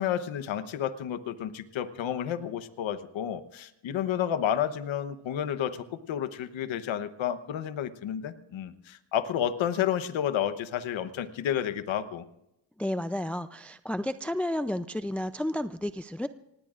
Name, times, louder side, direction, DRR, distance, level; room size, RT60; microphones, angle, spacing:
voice 1, 0.0-12.2, left 10 dB, 75° left, 11 dB, 1.1 m, -31 dB
voice 2, 12.8-16.3, left 1 dB, 5° left, 11 dB, 0.5 m, -31 dB
25.0 x 19.5 x 2.5 m, 0.85 s
cardioid pair, 80°, 47 cm